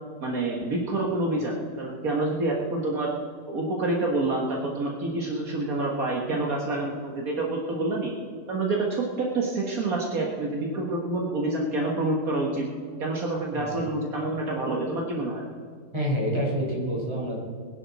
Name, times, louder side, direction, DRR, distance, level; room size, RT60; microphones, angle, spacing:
voice 1, 0.2-3.1 3.5-8.1 8.5-12.7 13.0-15.5, right 2 dB, 65° right, -1 dB, 1.9 m, -27 dB
voice 2, 15.9-17.4, equal, 15° right, -4 dB, 4.4 m, -27 dB
23.0 x 10.5 x 4.1 m, 2.2 s
omnidirectional pair, 1.7 m